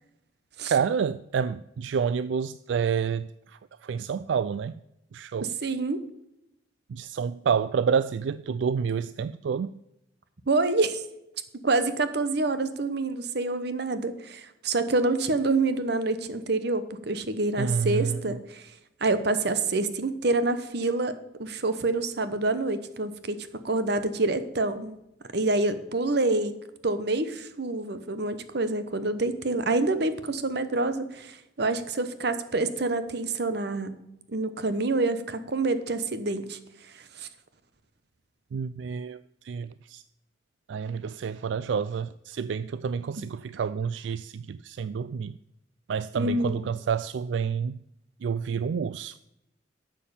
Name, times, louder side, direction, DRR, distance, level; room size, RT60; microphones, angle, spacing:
voice 1, 0.7-4.8 5.1-5.5 6.9-9.7 17.6-18.4 38.5-40.0 40.7-45.3 45.9-47.8 48.2-49.2, right 6 dB, 85° right, 0.3 m, -29 dB
voice 2, 5.6-6.0 10.5-11.0 11.6-18.7 19.0-23.4 23.6-25.0 25.3-26.6 26.8-33.9 34.3-36.6 37.2-37.3 46.1-46.5, right 2 dB, 65° right, 1.0 m, -27 dB
11.0 x 7.5 x 7.1 m
head